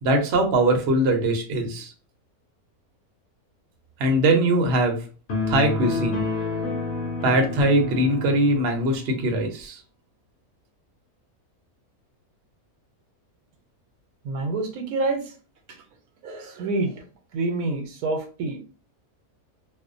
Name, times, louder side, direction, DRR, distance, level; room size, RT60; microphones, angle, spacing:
voice 1, 0.0-1.9 4.0-5.0 5.5-6.3 7.2-9.8, right 1 dB, 60° right, 3 dB, 0.8 m, -21 dB
sound 1, 5.3-8.8, left 3 dB, 70° left, 1.1 m, -29 dB
voice 2, 14.2-15.2 16.2-17.0 17.3-18.6, right 3 dB, 85° right, 5 dB, 1.1 m, -27 dB
2.6 x 2.1 x 2.5 m, 0.36 s
omnidirectional pair, 1.5 m